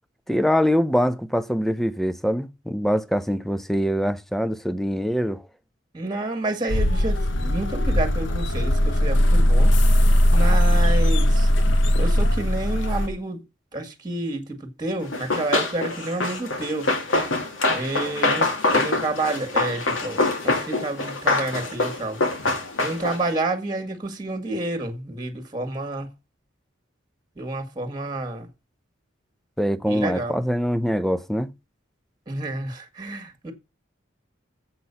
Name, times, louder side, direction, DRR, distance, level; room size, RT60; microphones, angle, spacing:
voice 1, 0.3-5.4 29.6-31.5, equal, ahead, 0.6 m, -23 dB
voice 2, 5.9-9.8 10.3-11.5 12.0-13.4 13.7-16.9 17.7-22.2 22.8-26.1 27.3-28.5 29.9-30.4 32.3-33.5, right 2 dB, 20° right, 1.8 m, -29 dB
sound 1, 6.7-13.1, left 1 dB, 70° left, 0.9 m, -19 dB
Run, 15.1-23.3, left 2 dB, 85° left, 2.6 m, -25 dB
7.8 x 6.1 x 7.0 m
head